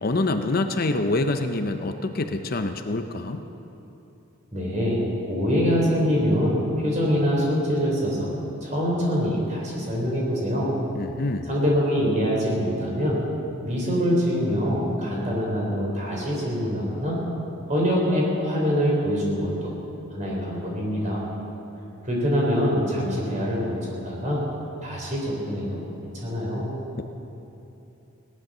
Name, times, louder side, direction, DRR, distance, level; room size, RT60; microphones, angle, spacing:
voice 1, 0.0-3.4 10.9-11.5 27.0-27.1, left 2 dB, 45° left, 7 dB, 0.7 m, -26 dB
voice 2, 4.5-8.3 8.6-10.7 11.5-13.2 13.6-17.2 17.7-19.7 20.1-21.2 22.0-24.4 24.8-25.8 26.1-26.7, equal, 35° right, -3 dB, 4.0 m, -24 dB
18.0 x 10.5 x 6.7 m, 3.0 s
head